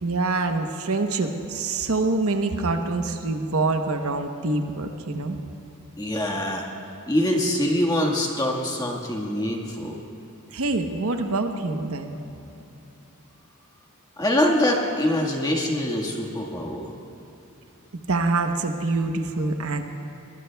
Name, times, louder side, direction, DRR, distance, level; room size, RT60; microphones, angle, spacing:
voice 1, 0.0-5.4 10.5-12.2 18.1-19.8, right 3 dB, 70° right, 5 dB, 0.9 m, -25 dB
voice 2, 6.0-6.7 7.1-10.0 14.2-16.9, left 1 dB, 15° left, 0 dB, 1.6 m, -24 dB
23.0 x 20.5 x 2.3 m, 3.0 s
head